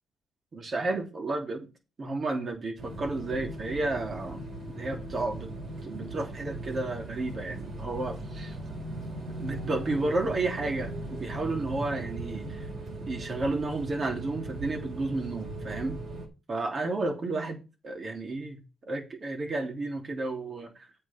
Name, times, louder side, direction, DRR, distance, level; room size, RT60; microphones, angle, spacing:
voice 1, 0.5-1.7 2.0-4.5 4.8-5.5 5.8-8.6 9.4-12.7 13.1-16.0 16.5-18.6 18.9-20.9, right 2 dB, 35° right, 3.1 m, -32 dB
sound 1, 2.8-16.3, right 2 dB, 55° right, 4.3 m, -38 dB
8.6 x 8.0 x 4.5 m
cardioid pair, 100°, 0 cm